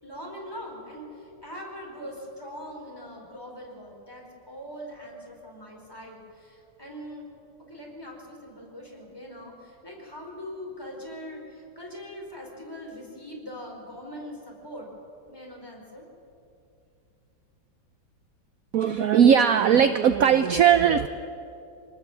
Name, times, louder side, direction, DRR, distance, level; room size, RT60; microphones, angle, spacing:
voice 1, 0.0-7.3 7.7-14.9 15.3-16.1, equal, 10° left, -2 dB, 4.9 m, -41 dB
voice 2, 18.7-21.1, right 8 dB, 65° right, 10 dB, 0.9 m, -19 dB
25.0 x 19.0 x 7.6 m, 2.6 s
omnidirectional pair, 2.2 m